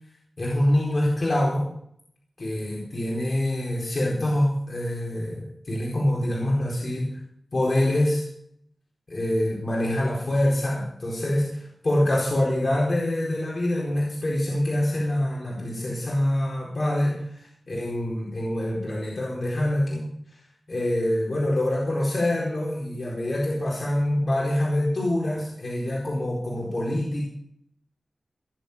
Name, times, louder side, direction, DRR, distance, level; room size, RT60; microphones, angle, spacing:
voice 1, 0.4-1.7 2.4-7.1 7.5-8.3 9.1-20.0 20.7-27.2, left 1 dB, 45° left, -4 dB, 4.4 m, -25 dB
17.5 x 7.5 x 6.8 m, 0.68 s
wide cardioid pair, 75°, 0 cm